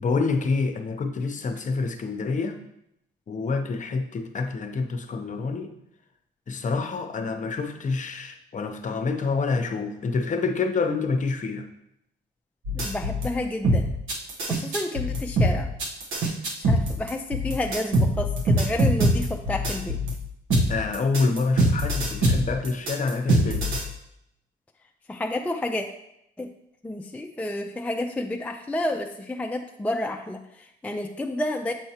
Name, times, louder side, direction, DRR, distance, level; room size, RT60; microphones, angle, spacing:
voice 1, 0.0-2.6 3.3-5.7 6.5-11.7 20.7-23.7, left 4 dB, 40° left, 6 dB, 0.7 m, -27 dB
sound 1, 12.6-13.3 13.6-20.1 20.5-23.8, right 1 dB, 85° right, 1.1 m, -23 dB
voice 2, 12.7-13.9 14.5-15.7 16.6-20.0 21.2-21.3 25.1-25.9 26.4-26.5 26.8-31.7, left 1 dB, 5° left, 3 dB, 0.4 m, -30 dB
7.3 x 4.5 x 2.9 m, 0.79 s
cardioid pair, 90°, 20 cm